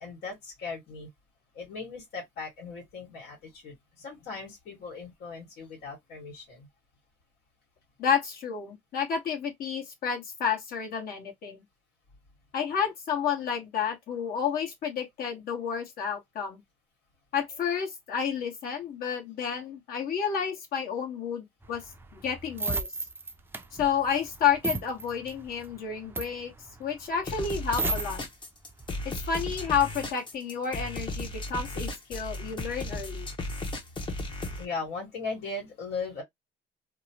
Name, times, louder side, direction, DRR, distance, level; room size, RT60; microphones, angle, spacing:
voice 1, 0.0-1.1 1.5-3.4 3.6-6.7 34.6-36.2, left 4 dB, 80° left, 1.6 m, -38 dB
voice 2, 8.0-11.6 12.5-16.6 17.3-21.8 22.1-22.9 23.7-26.5 26.8-28.2 29.0-33.3, left 7 dB, 60° left, 1.3 m, -30 dB
sound 1, 21.6-28.3 28.7-29.0, right 3 dB, 15° right, 0.4 m, -34 dB
sound 2, 27.3-34.6, left 2 dB, 30° left, 0.8 m, -35 dB
2.9 x 2.1 x 2.8 m
cardioid pair, 110°, 17 cm